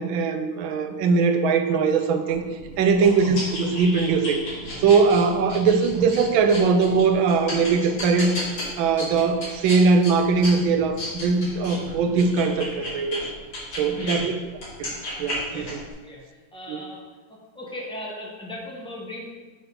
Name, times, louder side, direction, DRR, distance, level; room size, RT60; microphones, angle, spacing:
voice 1, 0.0-2.4 2.8-4.4 4.8-8.4 8.8-13.2 13.8-14.3 14.8-14.9 15.2-15.8 16.7-16.8, right 4 dB, 85° right, 7 dB, 1.4 m, -21 dB
sound 1, 2.3-14.2 14.5-15.9, left 1 dB, 85° left, 3.0 m, -34 dB
voice 2, 14.0-14.3 15.4-15.7 16.0-16.2 16.5-17.0 17.5-19.3, left 1 dB, 5° left, -3 dB, 0.8 m, -37 dB
7.2 x 3.4 x 5.5 m, 1.3 s
omnidirectional pair, 2.1 m